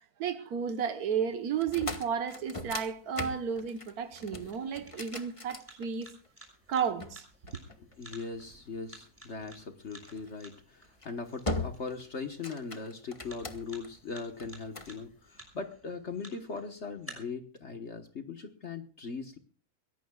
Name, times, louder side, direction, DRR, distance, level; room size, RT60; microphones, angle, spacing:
voice 1, 0.0-6.1 6.7-7.2, right 7 dB, 80° right, 1.6 m, -33 dB
sound 1, 1.5-6.3 7.0-8.3 10.1-10.3 10.8-11.1 11.5-12.0 12.3-13.9 14.4-15.0, left 2 dB, 20° left, 1.3 m, -39 dB
sound 2, 2.1-17.1, right 1 dB, 10° right, 5.8 m, -55 dB
voice 2, 7.8-19.4, left 4 dB, 50° left, 1.5 m, -40 dB
23.0 x 17.5 x 2.3 m
omnidirectional pair, 1.6 m